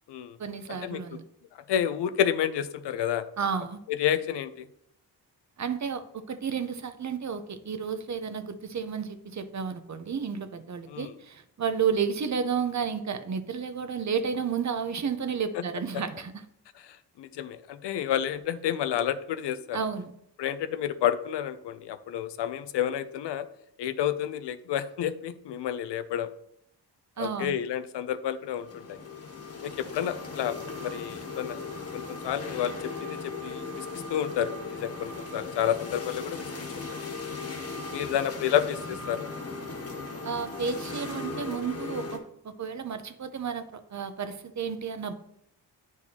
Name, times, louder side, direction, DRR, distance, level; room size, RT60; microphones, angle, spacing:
voice 1, 0.4-1.2 3.4-3.8 5.6-16.4 19.7-20.1 27.2-27.5 40.2-45.1, right 6 dB, 45° right, 10 dB, 0.7 m, -32 dB
voice 2, 1.7-3.2 3.9-4.7 10.9-11.1 15.9-16.0 16.8-19.8 20.4-23.5 23.8-26.3 27.2-29.0 29.6-31.6 31.9-32.7 33.0-36.5 36.7-37.0 37.9-39.3, left 10 dB, 85° left, 12 dB, 0.6 m, -30 dB
sound 1, 28.4-42.2, left 3 dB, 35° left, 1.4 m, -38 dB
9.4 x 4.7 x 2.8 m, 0.74 s
cardioid pair, 60°, 41 cm